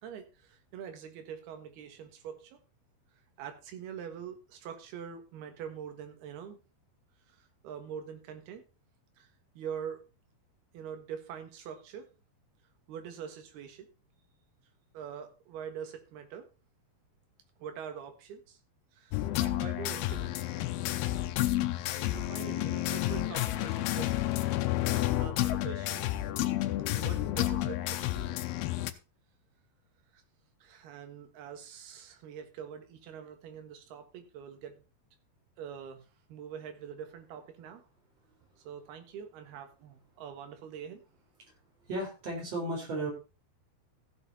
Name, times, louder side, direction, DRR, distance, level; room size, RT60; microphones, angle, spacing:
voice 1, 0.0-2.6 3.4-6.6 7.3-8.6 9.2-10.1 10.7-12.1 12.9-13.9 14.9-16.5 17.6-18.6 18.9-20.3 22.1-24.1 25.2-26.1 26.9-28.4 30.1-30.2 30.6-34.8 35.6-37.8 38.6-41.0, right 8 dB, 65° right, 6 dB, 3.4 m, -44 dB
sound 1, 19.1-28.9, left 15 dB, 75° left, 2.5 m, -30 dB
voice 2, 41.9-43.1, right 1 dB, 35° right, 1 dB, 4.7 m, -34 dB
15.0 x 7.4 x 4.2 m, 0.30 s
omnidirectional pair, 5.1 m